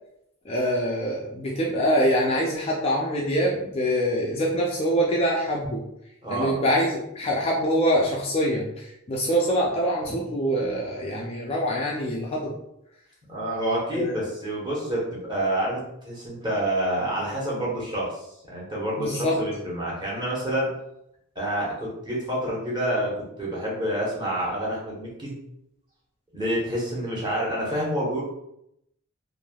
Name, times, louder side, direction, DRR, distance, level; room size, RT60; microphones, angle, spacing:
voice 1, 0.4-5.8 6.3-12.6 13.9-14.2 18.9-19.4, equal, 25° left, -3 dB, 0.3 m, -24 dB
voice 2, 6.2-6.6 10.1-10.2 13.3-20.7 21.3-25.3 26.3-28.2, right 1 dB, 20° right, -6 dB, 0.9 m, -28 dB
3.2 x 2.5 x 2.2 m, 0.80 s
head